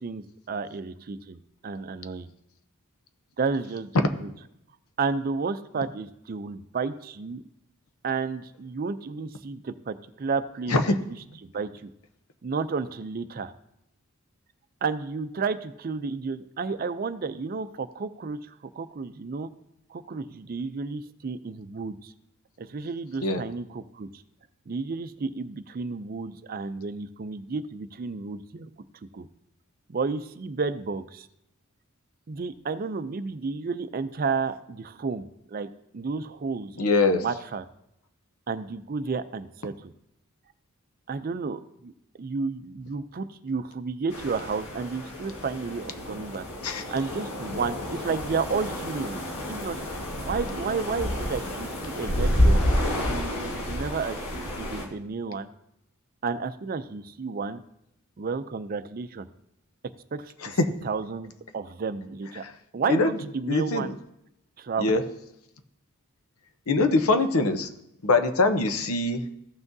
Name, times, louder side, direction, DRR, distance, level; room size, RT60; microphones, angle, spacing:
voice 1, 0.0-2.3 3.4-3.9 4.2-4.3 5.0-7.4 8.0-11.2 11.4-11.9 12.4-13.5 14.8-19.5 19.9-22.1 22.6-24.2 24.7-28.7 29.1-29.3 29.9-31.3 32.3-35.7 35.9-37.6 38.5-39.9 41.1-41.9 42.2-46.5 46.9-49.2 49.5-49.8 50.2-52.6 53.0-55.5 56.2-57.6 58.2-59.3 60.1-60.3 60.8-62.4 62.7-63.9 64.6-65.0, right 4 dB, 40° right, 12 dB, 0.4 m, -32 dB
voice 2, 36.8-37.2 46.6-46.8 60.6-60.7 62.9-63.1 63.5-63.9 64.8-65.0 66.7-67.7 68.0-69.2, left 3 dB, 85° left, 8 dB, 0.8 m, -22 dB
sound 1, 44.1-54.9, equal, 70° left, 1.6 m, -29 dB
15.0 x 5.9 x 2.7 m, 0.80 s
head